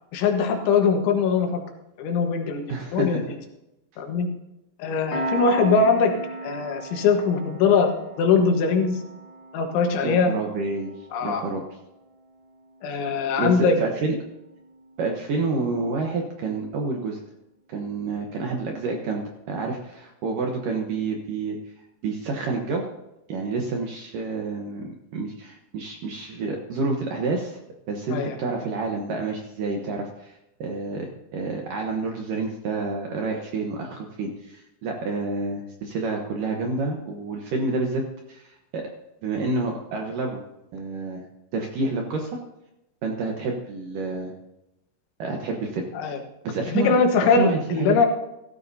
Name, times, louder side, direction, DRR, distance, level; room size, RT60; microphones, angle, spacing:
voice 1, 0.1-1.6 2.0-3.2 4.0-4.3 4.8-6.1 6.4-7.9 8.2-9.0 9.5-10.3 11.1-11.5 12.8-13.8 28.1-28.4 45.9-46.2 46.7-48.1, left 5 dB, 85° left, 4 dB, 3.8 m, -21 dB
voice 2, 2.7-3.2 10.0-10.9 11.2-11.6 12.9-13.0 13.4-14.1 15.0-17.2 17.7-21.6 22.0-22.8 23.3-24.8 25.1-27.6 27.9-38.0 38.3-38.9 39.2-40.4 40.7-41.2 41.5-42.3 43.0-44.3 45.2-45.9 46.4-47.0 47.4-48.1, right 3 dB, 70° right, 1 dB, 2.0 m, -28 dB
Piano, 5.1-16.2, right 2 dB, 40° left, 1.9 m, -37 dB
16.0 x 14.0 x 2.8 m, 0.91 s
omnidirectional pair, 5.3 m